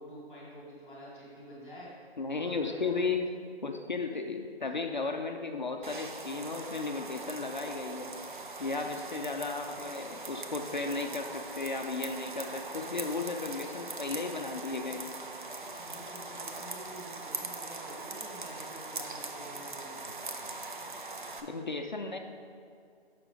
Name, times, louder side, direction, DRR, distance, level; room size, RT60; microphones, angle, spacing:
voice 1, 0.0-1.9 2.3-2.9 15.7-20.6, equal, 5° right, -12 dB, 1.1 m, -48 dB
voice 2, 2.2-3.2 3.6-8.1 8.6-15.1 21.4-22.2, left 4 dB, 45° left, 5 dB, 0.4 m, -35 dB
sound 1, 5.8-21.4, right 3 dB, 50° right, 0.6 m, -41 dB
6.6 x 5.9 x 3.8 m, 2.3 s
figure-of-eight pair, 165°, 32 cm